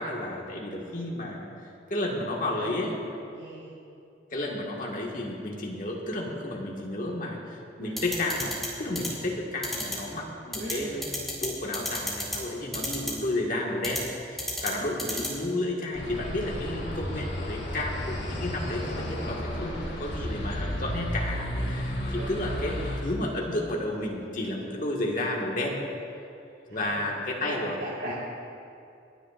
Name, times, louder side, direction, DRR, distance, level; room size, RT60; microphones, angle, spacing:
voice 1, 0.0-1.5 1.9-3.0 4.3-25.8 26.7-27.8 28.0-28.1, left 1 dB, 45° left, -2 dB, 1.7 m, -32 dB
voice 2, 2.5-3.0 3.3-3.7 7.8-8.0 10.6-11.1 22.0-22.6 26.7-28.1, right 1 dB, 70° right, -7 dB, 2.5 m, -40 dB
sound 1, 8.0-8.7 8.9-9.1 9.6-9.9 10.5-10.7 11.0-11.5 11.7-12.4 12.7-13.1 13.8-14.0 14.4-14.7 15.0-15.3, left 1 dB, ahead, 2.4 m, -30 dB
sound 2, 15.9-23.0, equal, 70° left, 2.7 m, -32 dB
29.0 x 10.0 x 2.5 m, 2.6 s
head